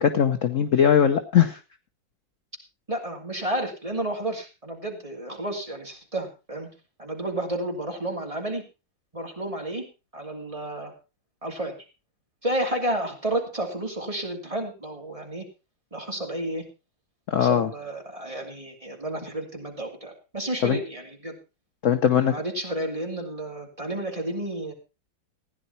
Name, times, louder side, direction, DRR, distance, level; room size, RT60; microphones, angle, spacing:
voice 1, 0.0-1.6 17.3-17.7 20.6-20.8 21.8-22.3, left 8 dB, 55° left, 9 dB, 1.0 m, -20 dB
voice 2, 2.9-6.7 7.0-8.6 9.1-9.8 10.1-10.9 11.4-11.8 12.4-15.5 15.9-16.6 17.3-21.4 22.3-24.7, right 1 dB, 15° right, 1 dB, 2.7 m, -31 dB
15.5 x 10.5 x 4.2 m, 0.29 s
omnidirectional pair, 2.1 m